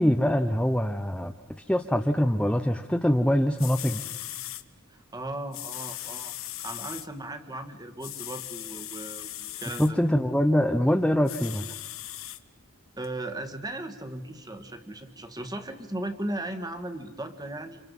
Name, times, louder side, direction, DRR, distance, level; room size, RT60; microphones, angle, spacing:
voice 1, 0.0-1.3 1.7-4.0 9.8-11.7, equal, 5° left, 5 dB, 0.7 m, -24 dB
sound 1, 3.3-3.4 3.6-4.6 5.5-7.1 8.0-9.9 11.2-12.4 13.0-13.1, left 14 dB, 70° left, 1.0 m, -38 dB
voice 2, 4.9-6.3 6.6-10.0 13.0-17.8, right 1 dB, 20° right, 7 dB, 1.7 m, -37 dB
29.5 x 27.5 x 5.5 m, 1.2 s
head